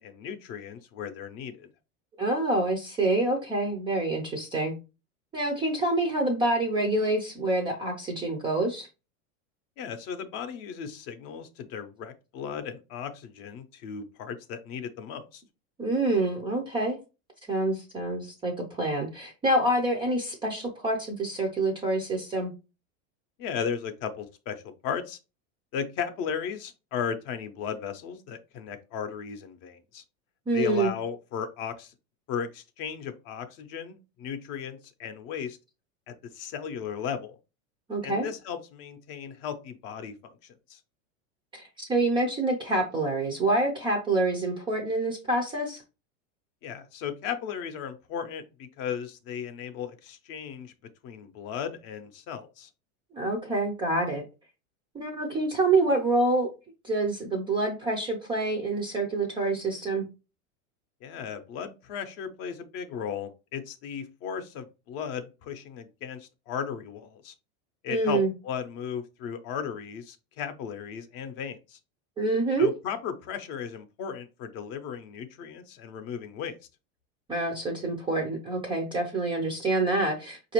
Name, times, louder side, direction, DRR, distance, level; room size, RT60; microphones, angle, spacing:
voice 1, 0.0-1.7 9.8-15.4 23.4-25.2 25.7-30.0 30.5-31.9 32.3-35.6 36.1-37.4 38.0-40.3 40.7-40.8 46.6-50.7 51.0-52.7 61.0-67.3 67.8-71.8 72.6-76.6, left 7 dB, 40° left, 8 dB, 0.6 m, -36 dB
voice 2, 2.2-4.7 5.3-8.9 15.8-17.0 17.5-22.5 30.5-30.9 37.9-38.3 41.8-45.8 53.1-54.2 54.9-56.5 56.8-60.1 67.9-68.3 72.2-72.7 77.3-80.5, right 2 dB, 15° right, 1 dB, 0.4 m, -27 dB
4.9 x 2.5 x 2.9 m, 0.29 s
supercardioid pair, 150°, 38 cm